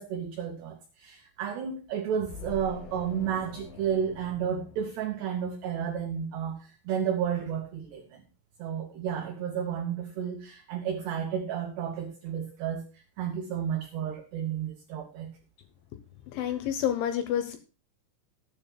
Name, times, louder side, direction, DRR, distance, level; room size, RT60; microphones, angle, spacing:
voice 1, 0.0-8.2 8.6-15.3, right 8 dB, 70° right, 2.9 m, -32 dB
sound 1, 2.2-5.7, left 4 dB, 60° left, 2.7 m, -45 dB
voice 2, 16.3-17.6, left 10 dB, 75° left, 3.0 m, -28 dB
19.5 x 9.3 x 2.2 m
omnidirectional pair, 5.9 m